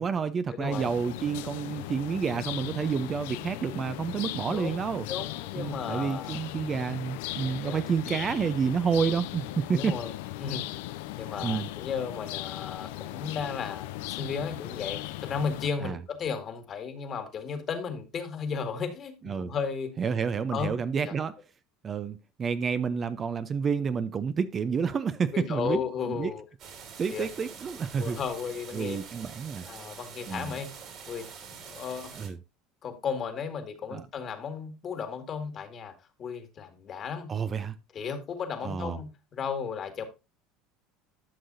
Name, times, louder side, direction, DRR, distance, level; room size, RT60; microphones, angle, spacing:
voice 1, 0.0-5.1 5.6-10.0 11.4-11.7 15.8-16.0 19.2-19.5 20.0-21.3 21.8-25.8 26.1-26.3 27.0-28.2 28.7-29.6 30.3-30.5 32.2-32.4 33.9-34.1 37.3-37.8 38.6-39.0, right 6 dB, 35° right, 0.6 m, -29 dB
voice 2, 0.5-0.9 4.5-4.8 5.1-6.5 7.4-7.8 9.7-10.1 10.4-10.6 11.2-19.9 20.5-20.8 21.0-21.1 25.3-26.4 27.1-27.3 28.0-29.0 29.7-30.7 31.1-31.3 31.6-32.1 32.8-35.9 36.2-37.3 37.9-40.0, left 6 dB, 40° left, 1.9 m, -34 dB
sound 1, 0.7-15.7, left 16 dB, 75° left, 0.4 m, -38 dB
sound 2, 26.6-32.3, right 6 dB, 55° right, 3.1 m, -45 dB
11.5 x 6.2 x 2.7 m
hypercardioid pair, 90°, 0 cm